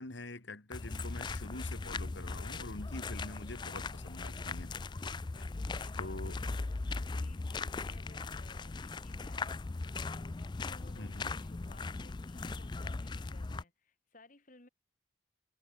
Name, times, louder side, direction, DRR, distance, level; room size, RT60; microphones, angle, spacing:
voice 1, 0.0-4.7 6.0-6.4 11.0-11.3, left 2 dB, 70° left, 2.1 m, -45 dB
sound 1, 0.7-13.6, left 3 dB, 25° left, 0.4 m, -39 dB
voice 2, 5.3-14.7, left 2 dB, 40° left, 2.0 m, -60 dB
head